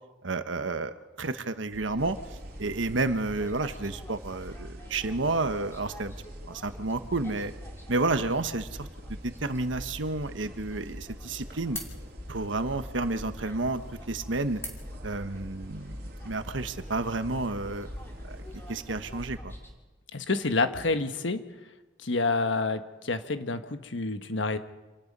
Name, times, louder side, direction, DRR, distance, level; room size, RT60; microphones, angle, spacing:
voice 1, 0.2-2.2 2.6-6.1 6.5-7.5 7.9-8.9 9.2-11.8 12.3-13.8 14.1-14.6 15.0-17.9 18.3-18.4 18.7-19.6, right 3 dB, 85° right, 10 dB, 1.2 m, -30 dB
sound 1, 1.7-19.7, left 1 dB, 15° left, 2.7 m, -43 dB
sound 2, 2.0-19.3, right 1 dB, 55° right, 3.2 m, -49 dB
voice 2, 20.1-21.4 22.0-24.6, left 3 dB, 80° left, 8 dB, 1.3 m, -28 dB
27.5 x 18.5 x 5.5 m, 1.2 s
head